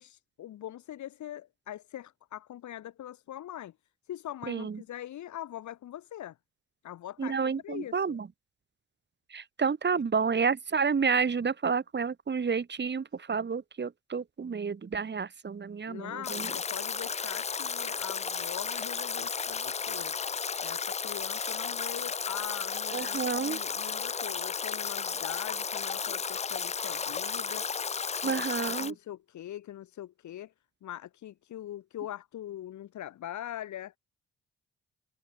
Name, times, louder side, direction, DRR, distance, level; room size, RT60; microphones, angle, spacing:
voice 1, 0.0-3.7 4.1-6.4 6.8-7.4 7.6-8.2 15.9-20.2 20.6-27.9 28.1-28.4 28.8-30.5 30.8-33.9, left 12 dB, 65° left, 5.2 m, -42 dB
voice 2, 4.5-4.8 7.2-8.3 9.3-16.5 22.9-23.6 28.2-29.0, right 5 dB, 35° right, 1.9 m, -30 dB
Stream / Drip / Trickle dribble, 16.2-28.9, left 6 dB, 20° left, 0.5 m, -33 dB
hypercardioid pair, 45°, 32 cm